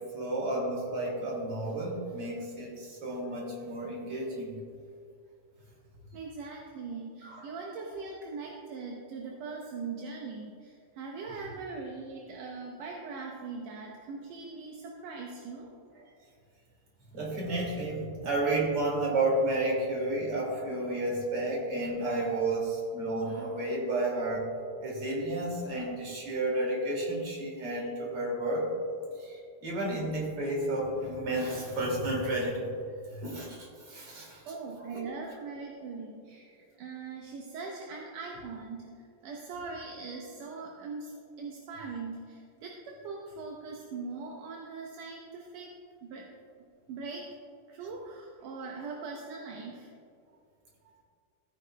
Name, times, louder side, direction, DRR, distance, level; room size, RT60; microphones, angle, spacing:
voice 1, 0.0-4.6 7.2-7.4 16.0-16.1 17.1-24.5 24.8-28.7 29.1-32.7 33.1-34.4 34.9-35.0, right 2 dB, 45° right, -3 dB, 3.2 m, -31 dB
voice 2, 6.1-15.7 34.5-45.7 46.0-46.3 46.9-47.3 47.7-49.9, right 4 dB, 70° right, -1 dB, 1.8 m, -41 dB
15.5 x 9.6 x 2.3 m, 2.4 s
omnidirectional pair, 3.6 m